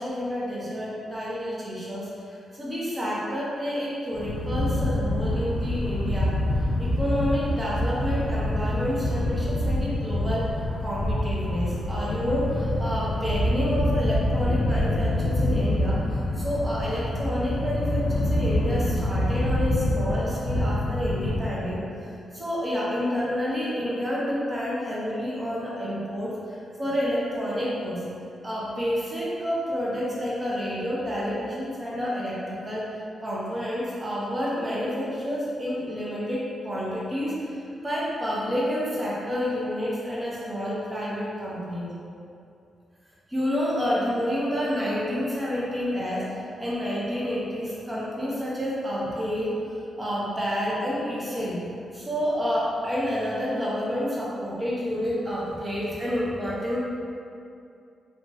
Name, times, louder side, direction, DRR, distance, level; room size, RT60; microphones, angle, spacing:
voice 1, 0.0-10.5 10.8-28.0 28.4-32.9 33.2-41.9 43.3-49.6 50.0-51.6 51.9-56.8, equal, 20° right, -7 dB, 0.8 m, -29 dB
sound 1, 4.1-21.4, left 1 dB, 70° left, 0.4 m, -26 dB
2.9 x 2.5 x 2.3 m, 2.5 s
cardioid pair, 75°, 0 cm